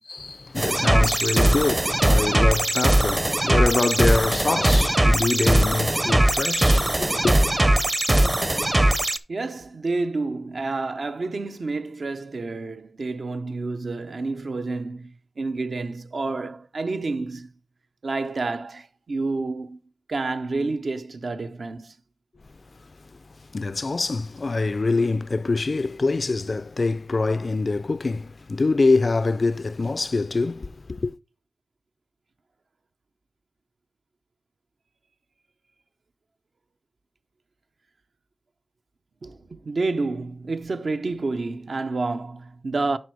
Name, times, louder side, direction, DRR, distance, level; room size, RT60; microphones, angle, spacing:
voice 1, 0.1-7.4 23.5-31.2, left 3 dB, 50° left, 0.3 m, -25 dB
sound 1, 0.6-9.2, right 1 dB, 25° right, 0.7 m, -20 dB
voice 2, 9.3-15.1 15.4-17.5 18.0-19.8 20.1-21.9 39.2-43.0, right 3 dB, 65° right, 0.7 m, -29 dB
11.0 x 4.3 x 4.6 m
wide cardioid pair, 70°, 0 cm